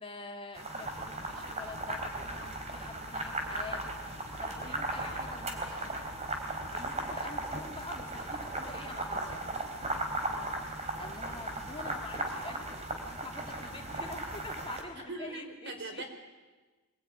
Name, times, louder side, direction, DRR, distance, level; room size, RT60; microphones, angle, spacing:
voice 1, 0.0-6.1 6.3-9.5 11.0-16.0, left 3 dB, 25° left, 3 dB, 2.6 m, -46 dB
sound 1, 0.6-14.8, right 2 dB, 30° right, 4.1 m, -37 dB
voice 2, 4.4-4.8 10.2-10.6 15.0-16.0, right 2 dB, 55° right, 5 dB, 4.7 m, -43 dB
26.0 x 22.5 x 9.8 m, 1.2 s
head